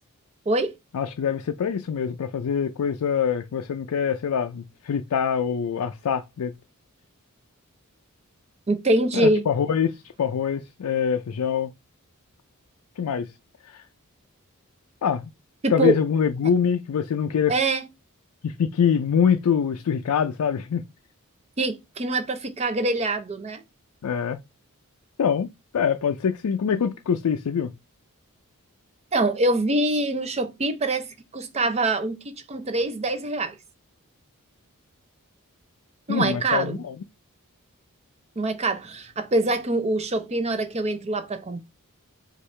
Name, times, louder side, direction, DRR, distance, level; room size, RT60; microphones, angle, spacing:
voice 1, 0.9-6.5 9.1-11.7 13.0-13.3 13.7-13.8 15.0-15.3 15.7-17.5 18.4-20.8 24.0-24.4 25.2-25.5 25.7-27.7 36.1-36.9, left 7 dB, 85° left, 0.4 m, -24 dB
voice 2, 8.7-9.4 15.6-16.0 17.5-17.8 21.6-23.6 29.1-31.1 31.3-33.6 36.1-36.8 38.4-41.6, right 2 dB, 30° right, 0.5 m, -24 dB
4.5 x 2.4 x 3.2 m
head